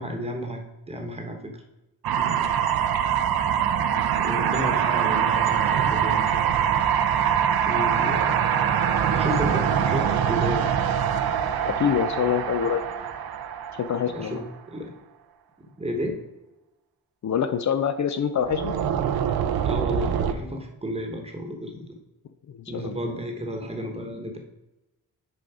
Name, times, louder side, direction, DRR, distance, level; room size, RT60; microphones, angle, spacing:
voice 1, 0.0-1.6 2.1-2.5 4.2-6.5 7.6-8.4 9.1-10.7 14.1-15.0 15.6-16.2 19.6-22.0 22.7-24.4, equal, 15° right, 4 dB, 1.1 m, -32 dB
sound 1, 2.0-14.4 18.4-20.3, right 8 dB, 85° right, 0.7 m, -24 dB
voice 2, 11.7-12.8 13.7-14.4 17.2-18.7 22.5-22.9, left 8 dB, 55° left, 10 dB, 0.5 m, -25 dB
10.0 x 3.9 x 4.8 m, 0.98 s
wide cardioid pair, 145°, 36 cm